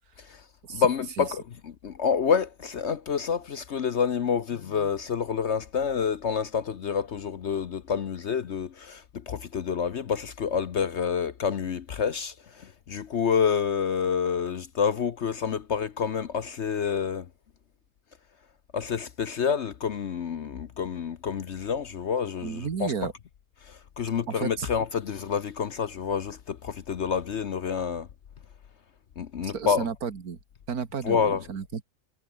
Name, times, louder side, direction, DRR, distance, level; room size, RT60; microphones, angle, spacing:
voice 1, 0.2-17.3 18.7-22.9 23.6-28.1 29.2-29.9 31.0-31.4, left 6 dB, 50° left, 1.0 m, -28 dB
voice 2, 22.4-23.1 24.3-24.7 29.4-30.4 30.7-31.8, right 6 dB, 65° right, 2.1 m, -33 dB
omnidirectional pair, 1.7 m